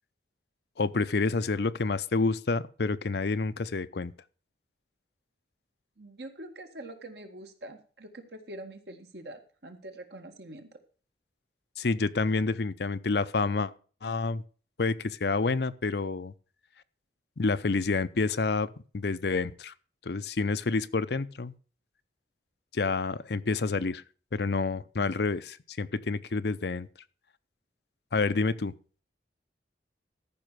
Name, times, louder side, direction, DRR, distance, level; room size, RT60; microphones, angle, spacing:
voice 1, 0.8-4.1 11.8-13.7 14.0-14.4 14.8-16.3 17.4-19.7 20.1-21.5 22.7-24.0 24.3-26.9 28.1-28.7, left 3 dB, 65° left, 0.6 m, -28 dB
voice 2, 6.0-10.7, right 1 dB, 65° right, 1.8 m, -44 dB
14.0 x 5.7 x 6.2 m
head